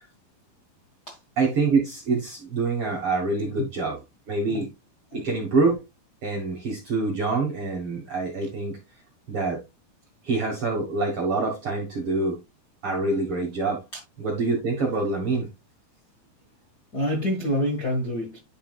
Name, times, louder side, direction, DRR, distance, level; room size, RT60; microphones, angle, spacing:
voice 1, 1.4-4.0 4.3-4.7 5.1-5.8 6.2-8.7 9.3-9.6 10.3-12.4 12.8-13.8 14.2-15.5, right 3 dB, 55° right, 1.7 m, -25 dB
voice 2, 16.9-18.4, equal, 45° left, 1.3 m, -27 dB
10.0 x 5.7 x 2.4 m
omnidirectional pair, 4.4 m